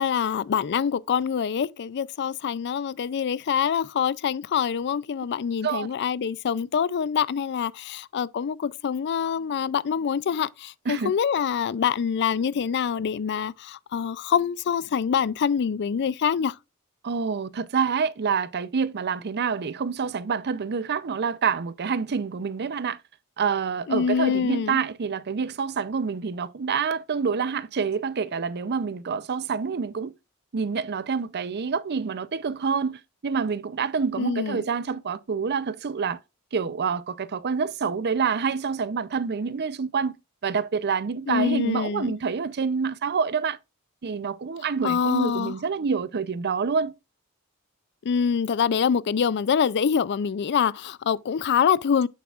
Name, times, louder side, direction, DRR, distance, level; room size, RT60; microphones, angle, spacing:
voice 1, 0.0-16.5 23.9-24.8 34.2-34.6 41.3-42.2 44.8-45.6 48.0-52.1, left 7 dB, 50° left, 0.4 m, -25 dB
voice 2, 17.0-23.0 23.4-30.1 30.5-36.2 36.5-40.1 40.4-43.6 44.0-46.9, right 5 dB, 50° right, 0.5 m, -27 dB
8.6 x 6.8 x 2.4 m
head